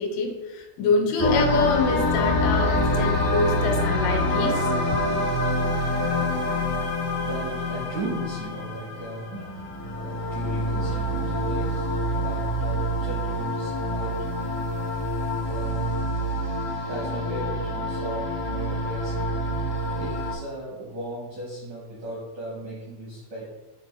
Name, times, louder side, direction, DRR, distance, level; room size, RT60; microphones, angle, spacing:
voice 1, 0.0-5.0, left 4 dB, 85° left, 3 dB, 3.2 m, -26 dB
voice 2, 0.8-1.2 6.0-6.4 7.2-9.4 9.9-14.2 15.5-16.0 16.9-19.4 19.9-23.5, right 1 dB, 75° right, -5 dB, 1.8 m, -37 dB
sound 1, 1.2-20.3, left 1 dB, 70° left, 1.0 m, -26 dB
sound 2, 7.7-8.1 9.3-13.4, right 2 dB, 60° right, 0.8 m, -45 dB
7.9 x 3.1 x 4.6 m, 1.0 s
omnidirectional pair, 5.6 m